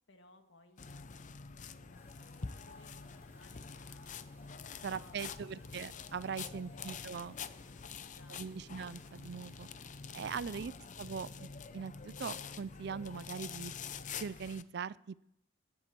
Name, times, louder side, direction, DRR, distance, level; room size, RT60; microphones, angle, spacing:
voice 1, 0.1-1.5 1.7-4.2 4.9-5.9 6.7-7.2 8.0-8.7 10.6-11.0, left 2 dB, 70° left, 6 dB, 1.8 m, -64 dB
sound 1, 0.8-14.6, left 6 dB, 40° left, 0.6 m, -46 dB
sound 2, 1.9-9.9, right 2 dB, 15° right, 1.9 m, -68 dB
voice 2, 4.8-7.4 8.4-9.7 10.1-10.7 11.0-13.7 14.2-15.2, right 6 dB, 55° right, 20 dB, 0.4 m, -41 dB
11.5 x 10.5 x 6.8 m, 0.81 s
head